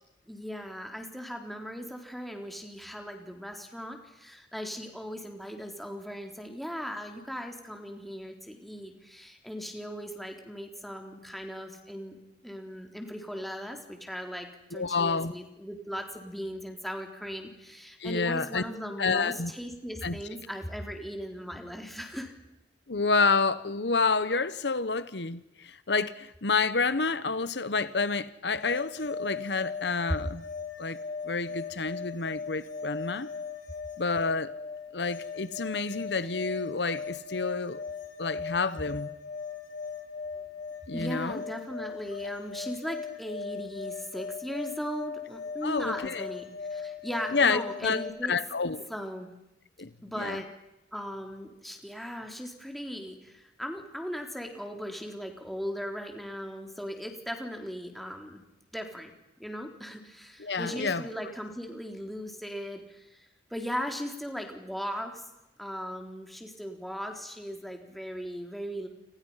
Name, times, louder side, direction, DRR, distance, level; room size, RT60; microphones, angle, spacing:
voice 1, 0.3-12.2 12.4-22.3 40.9-48.3 48.9-49.3 50.0-50.5 50.9-58.4 58.7-59.1 59.4-65.2 65.6-68.9, equal, ahead, 3.8 m, -38 dB
voice 2, 14.7-15.3 18.0-18.6 19.0-19.5 20.0-20.2 22.9-30.4 30.8-31.0 31.2-33.3 34.0-34.5 34.9-37.8 38.2-39.1 40.9-41.4 45.6-46.3 47.3-48.0 48.3-48.9 49.8-49.9 50.2-50.4 60.4-61.0, left 4 dB, 75° left, 1.1 m, -29 dB
sound 1, 28.6-48.1, left 5 dB, 50° left, 4.6 m, -39 dB
29.0 x 27.0 x 5.8 m
head